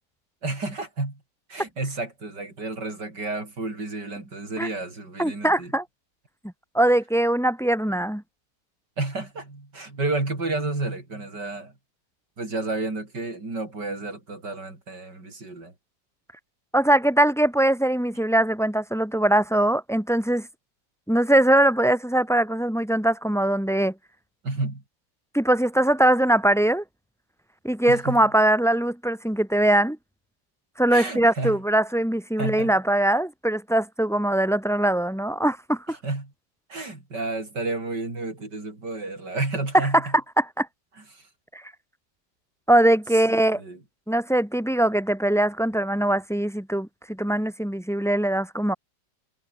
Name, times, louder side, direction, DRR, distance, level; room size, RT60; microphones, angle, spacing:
voice 1, 0.4-1.2 1.5-5.7 9.0-11.7 12.4-15.7 24.4-24.8 27.9-28.2 30.9-31.6 32.4-32.7 35.9-36.3 36.7-40.1 41.1-41.2 43.5-43.8, right 3 dB, 70° right, 6.5 m, -31 dB
voice 2, 5.2-5.8 6.7-8.2 16.7-20.5 21.1-23.9 25.3-26.8 27.6-30.0 30.8-36.0 39.7-39.9 40.4-40.7 41.5-41.6 42.7-43.6 44.1-48.7, right 1 dB, ahead, 1.6 m, -21 dB
omnidirectional pair, 1.9 m